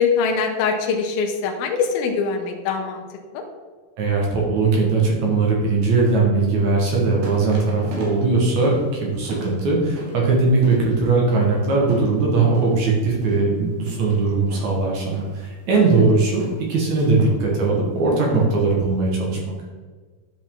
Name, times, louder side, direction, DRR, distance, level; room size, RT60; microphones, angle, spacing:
voice 1, 0.0-3.0 3.3-3.4 15.7-16.0, left 5 dB, 85° left, 2 dB, 2.6 m, -22 dB
voice 2, 4.0-19.4, right 3 dB, 60° right, -2 dB, 2.4 m, -20 dB
sound 1, 6.8-19.1, right 3 dB, 80° right, 3.2 m, -38 dB
10.5 x 5.9 x 3.7 m, 1.4 s
omnidirectional pair, 4.2 m